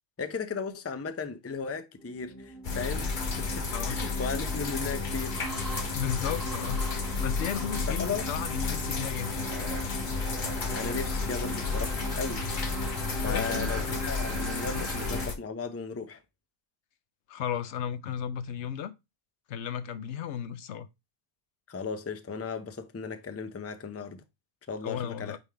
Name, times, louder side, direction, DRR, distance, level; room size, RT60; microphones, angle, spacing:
voice 1, 0.2-5.4 7.9-8.2 10.7-12.4 13.2-16.2 21.7-24.2 24.7-25.4, left 5 dB, 25° left, 0.3 m, -36 dB
sound 1, 2.0-15.3, right 1 dB, 55° right, 3.3 m, -39 dB
sound 2, 2.6-15.4, left 4 dB, 45° left, 1.1 m, -32 dB
voice 2, 3.7-4.0 5.9-6.9 7.2-9.5 13.1-14.0 14.7-14.9 17.3-18.9 19.5-20.9 24.8-25.4, left 9 dB, 70° left, 1.0 m, -34 dB
8.9 x 3.5 x 3.4 m
omnidirectional pair, 1.3 m